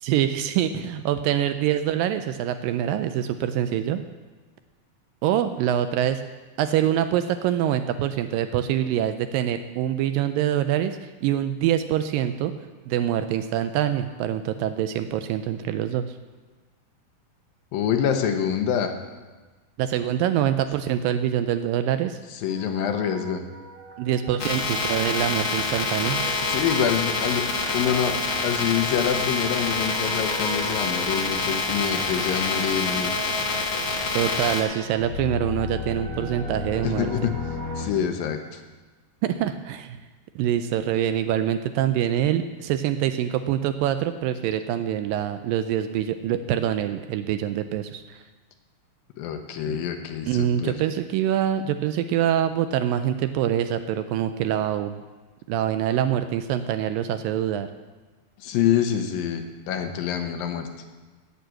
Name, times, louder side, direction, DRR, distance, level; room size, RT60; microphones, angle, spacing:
voice 1, 0.0-4.0 5.2-6.2 6.6-12.5 12.9-16.2 19.8-22.2 24.0-26.2 34.1-37.1 39.2-40.0 40.4-48.2 49.7-49.8 50.3-55.0 55.5-57.7, right 10 dB, 80° right, 10 dB, 2.1 m, -25 dB
voice 2, 17.7-18.9 22.3-23.4 26.4-33.1 36.8-37.4 37.8-38.6 49.2-50.8 58.4-60.7, left 8 dB, 75° left, 6 dB, 2.5 m, -26 dB
sound 1, 22.5-37.9, left 2 dB, 35° right, 2.1 m, -37 dB
sound 2, 24.4-34.6, left 3 dB, 45° left, 1.8 m, -26 dB
9.6 x 9.1 x 7.6 m, 1.3 s
omnidirectional pair, 4.3 m